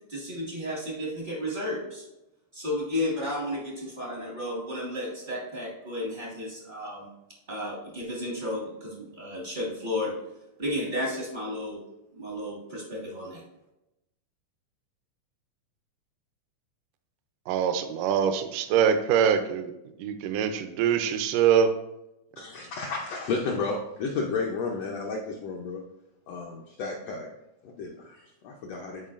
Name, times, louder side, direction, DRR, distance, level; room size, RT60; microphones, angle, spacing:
voice 1, 0.1-2.0 2.5-7.1 7.5-10.1 10.6-11.8 12.1-13.4, left 1 dB, 60° right, -3 dB, 0.5 m, -33 dB
voice 2, 17.5-19.7 20.0-21.7, right 8 dB, 85° right, 9 dB, 2.1 m, -24 dB
voice 3, 22.4-25.8 26.3-27.3 27.6-29.1, left 4 dB, 80° left, -1 dB, 1.4 m, -32 dB
11.0 x 4.5 x 2.5 m, 0.90 s
omnidirectional pair, 3.7 m